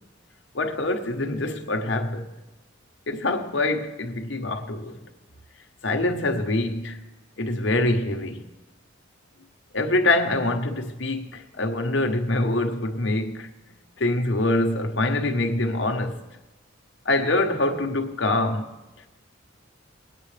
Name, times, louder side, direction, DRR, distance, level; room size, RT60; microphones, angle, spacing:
voice 1, 0.5-2.3 3.1-4.9 5.8-7.0 7.4-8.4 9.7-13.5 14.0-16.2 17.0-18.7, left 2 dB, 60° left, 1.1 m, -25 dB
20.5 x 9.4 x 3.3 m
head